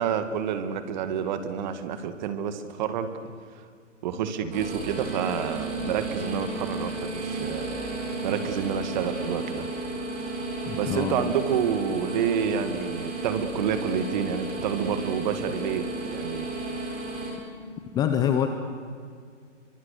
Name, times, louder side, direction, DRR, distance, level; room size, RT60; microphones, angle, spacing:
voice 1, 0.0-3.3 4.0-7.7 8.2-9.7 10.8-16.5, right 7 dB, 35° right, 10 dB, 2.2 m, -29 dB
sound 1, 4.5-17.3, right 2 dB, 20° right, 4.8 m, -33 dB
voice 2, 10.6-11.3 17.9-18.5, left 9 dB, 10° left, 7 dB, 0.7 m, -25 dB
29.0 x 24.5 x 6.8 m, 2.2 s
figure-of-eight pair, 135°, 38 cm